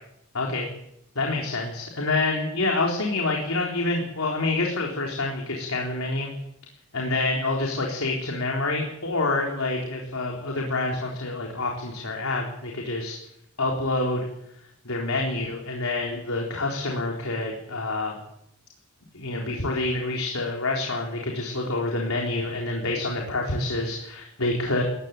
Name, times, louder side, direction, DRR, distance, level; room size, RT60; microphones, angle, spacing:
voice 1, 0.3-0.7 1.2-6.3 6.9-13.2 13.6-14.3 14.8-18.2 19.1-24.8, left 2 dB, 85° left, 0 dB, 3.9 m, -27 dB
19.5 x 15.5 x 9.1 m, 0.80 s
head